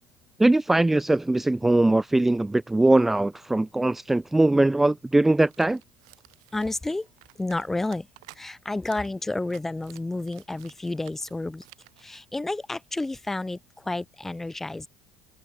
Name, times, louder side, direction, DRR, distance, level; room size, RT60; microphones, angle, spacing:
voice 1, 0.4-5.8, right 2 dB, 10° right, 0.6 m, -21 dB
sound 1, 5.4-8.4 8.8-9.1 9.4-12.2, right 22 dB, 85° right, 6.3 m, -54 dB
voice 2, 6.5-7.1 7.4-8.1 8.4-11.6 12.0-14.9, left 2 dB, 10° left, 1.1 m, -30 dB
supercardioid pair, 105°, 3 cm